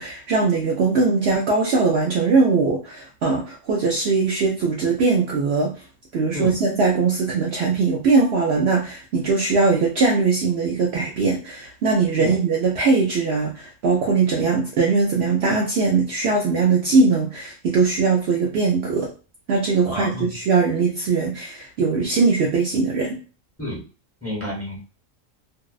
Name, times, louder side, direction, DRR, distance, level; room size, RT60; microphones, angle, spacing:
voice 1, 0.0-5.7 6.1-19.1 19.5-23.2, right 4 dB, 65° right, -2 dB, 0.7 m, -20 dB
voice 2, 19.9-20.3 23.6-23.8 24.2-24.8, left 1 dB, 10° left, -6 dB, 0.9 m, -30 dB
2.5 x 2.1 x 2.3 m, 0.34 s
omnidirectional pair, 1.4 m